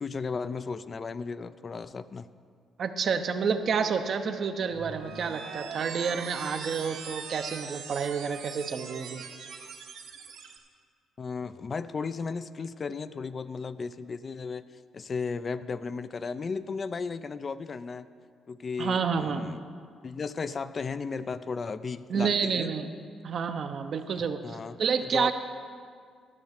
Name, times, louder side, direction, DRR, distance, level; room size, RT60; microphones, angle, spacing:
voice 1, 0.0-2.3 11.2-14.6 14.9-18.1 18.5-19.6 20.0-22.7 24.1-25.3, left 5 dB, 40° left, 13 dB, 0.4 m, -35 dB
voice 2, 2.8-9.2 18.8-19.4 22.1-22.9 23.2-25.3, right 6 dB, 55° right, 8 dB, 0.7 m, -29 dB
sound 1, 4.7-10.6, right 6 dB, 85° right, 1.1 m, -41 dB
12.0 x 6.6 x 6.5 m, 2.1 s
cardioid pair, 90°, 0 cm